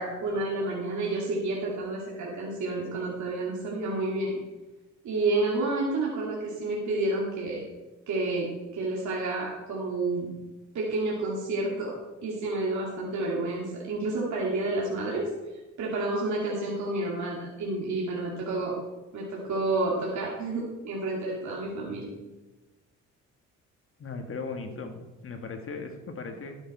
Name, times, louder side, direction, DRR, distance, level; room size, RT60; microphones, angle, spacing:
voice 1, 0.0-4.3 5.0-7.6 8.1-10.3 10.7-11.9 12.2-15.3 15.8-18.8 19.1-22.1, right 2 dB, 70° right, -3 dB, 2.3 m, -30 dB
voice 2, 24.0-26.6, left 4 dB, 45° left, 5 dB, 1.8 m, -37 dB
12.5 x 7.1 x 4.2 m, 1.1 s
cardioid pair, 90°, 30 cm